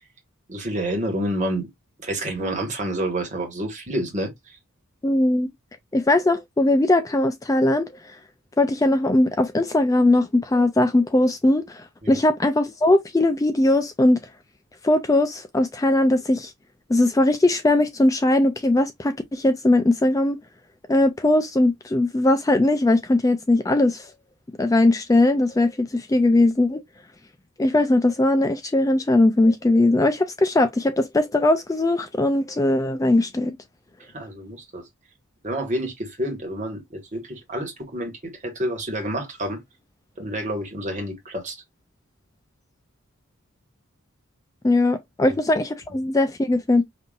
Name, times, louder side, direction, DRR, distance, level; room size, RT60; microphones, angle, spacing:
voice 1, 0.5-1.7 2.0-4.6 12.0-12.2 34.1-34.8 35.4-39.6 40.2-41.6 45.3-45.4, right 1 dB, 35° right, 1.4 m, -29 dB
voice 2, 5.0-5.5 5.9-8.2 8.6-14.2 14.8-16.5 16.9-20.4 20.9-24.1 24.6-26.8 27.6-33.6 44.6-46.8, left 2 dB, 15° left, 0.3 m, -20 dB
5.3 x 2.7 x 2.4 m
head